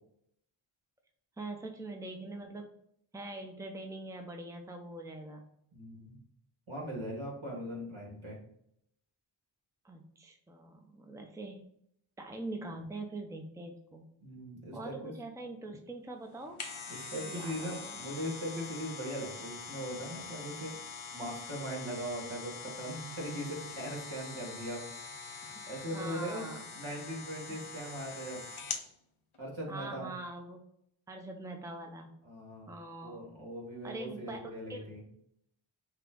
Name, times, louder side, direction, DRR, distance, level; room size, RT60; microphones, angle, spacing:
voice 1, 1.4-2.7 3.1-5.4 9.8-11.6 12.2-14.1 14.7-16.6 17.2-18.0 25.4-26.6 27.5-27.6 29.7-30.6 31.1-32.1 32.7-33.3 33.8-34.8, right 2 dB, 5° right, 3 dB, 0.7 m, -43 dB
voice 2, 5.7-6.2 6.7-8.4 14.2-15.1 16.9-20.9 21.1-24.9 25.2-25.4 25.7-26.5 26.7-28.4 29.4-30.1 32.3-32.7 33.0-35.0, equal, 70° right, -2 dB, 1.9 m, -40 dB
sound 1, 16.3-28.9 29.3-29.4, left 5 dB, 75° left, 0.9 m, -44 dB
5.6 x 2.5 x 3.7 m, 0.73 s
wide cardioid pair, 40°, 50 cm